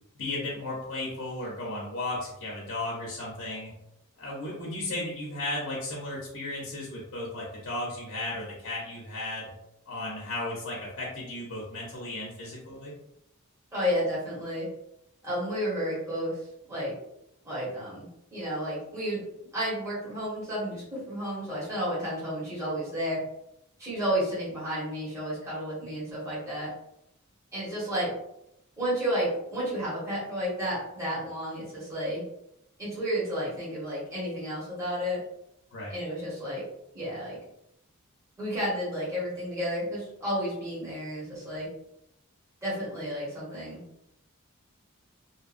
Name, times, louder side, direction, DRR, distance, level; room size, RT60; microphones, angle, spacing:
voice 1, 0.2-3.7 4.2-9.5 9.9-12.9 35.7-36.0, left 2 dB, 60° left, -4 dB, 0.7 m, -35 dB
voice 2, 13.7-14.7 15.2-16.9 17.4-19.2 19.5-23.2 23.8-26.7 27.5-28.1 28.8-32.2 32.8-35.2 35.9-36.6 36.9-37.4 38.4-41.7 42.6-43.8, equal, 15° right, -10 dB, 1.1 m, -31 dB
2.8 x 2.2 x 2.5 m, 0.80 s
head